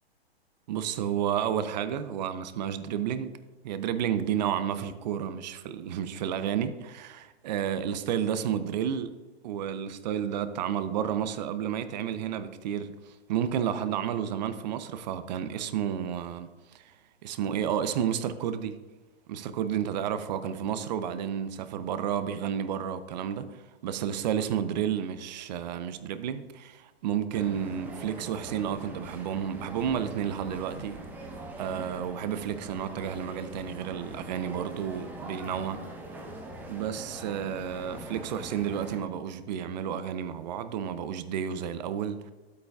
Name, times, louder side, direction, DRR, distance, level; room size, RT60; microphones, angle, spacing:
voice 1, 0.7-3.3 3.6-9.2 9.4-16.5 16.7-16.9 17.2-18.8 19.3-31.0 31.6-35.8 36.7-42.3, right 9 dB, 40° right, 0.7 m, -31 dB
sound 1, 27.3-39.0, right 1 dB, 5° right, 0.9 m, -43 dB
11.5 x 8.2 x 2.4 m
hypercardioid pair, 125°, 32 cm